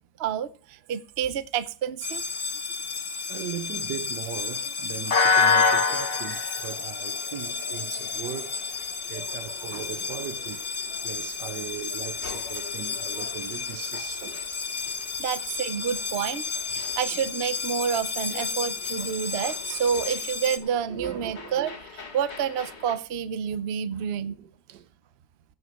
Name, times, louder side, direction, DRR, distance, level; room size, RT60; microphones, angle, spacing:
voice 1, 0.2-2.2 9.7-9.8 15.2-24.4, right 8 dB, 50° right, 0.7 m, -29 dB
sound 1, 2.0-20.6, left 5 dB, 35° left, 1.2 m, -29 dB
voice 2, 3.3-10.6 11.0-14.4 20.9-21.8 24.2-24.9, right 11 dB, 75° right, 1.3 m, -38 dB
sound 2, 7.4-23.0, left 4 dB, 80° left, 3.0 m, -47 dB
15.5 x 8.3 x 4.4 m
omnidirectional pair, 1.9 m